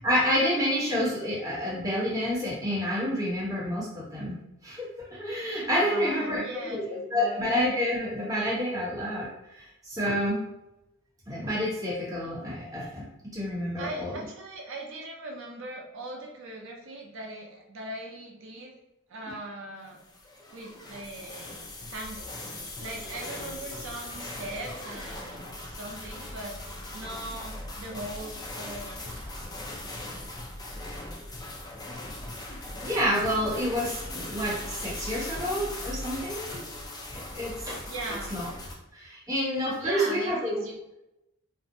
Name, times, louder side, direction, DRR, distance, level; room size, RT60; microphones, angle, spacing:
voice 1, 0.0-4.4 4.6-10.4 11.3-13.0 13.3-14.1 32.8-36.6 37.1-37.8 38.3-38.5 38.9-40.6, equal, 15° right, -6 dB, 0.8 m, -29 dB
voice 2, 5.8-7.5 13.8-18.7 19.1-20.0 20.5-21.6 21.9-22.3 22.8-26.6 26.9-29.2 37.9-38.4 39.8-40.7, right 1 dB, 60° right, 0 dB, 0.5 m, -39 dB
sound 1, 20.0-38.7, left 1 dB, 20° left, 0.3 m, -39 dB
2.5 x 2.0 x 2.6 m, 0.88 s
head